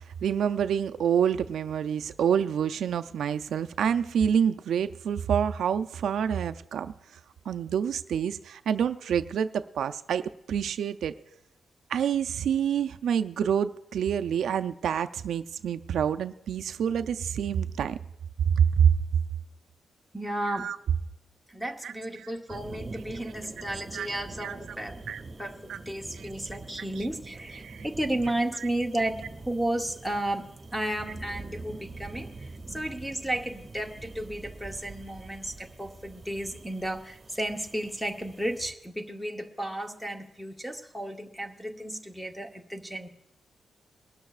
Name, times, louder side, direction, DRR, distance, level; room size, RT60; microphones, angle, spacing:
voice 1, 0.2-6.9 7.5-11.1 11.9-18.0 18.5-18.9 20.5-20.8 21.8-22.3 23.9-24.1 24.4-24.5 25.1-25.2 25.7-25.8 27.6-27.9 28.6-28.7, right 8 dB, 75° right, 10 dB, 0.4 m, -27 dB
voice 2, 20.1-20.7 21.5-25.0 25.4-43.1, right 1 dB, ahead, 5 dB, 0.9 m, -33 dB
sound 1, 22.5-38.7, right 3 dB, 20° right, 1.8 m, -45 dB
22.0 x 12.5 x 2.4 m, 0.83 s
wide cardioid pair, 155°, 0 cm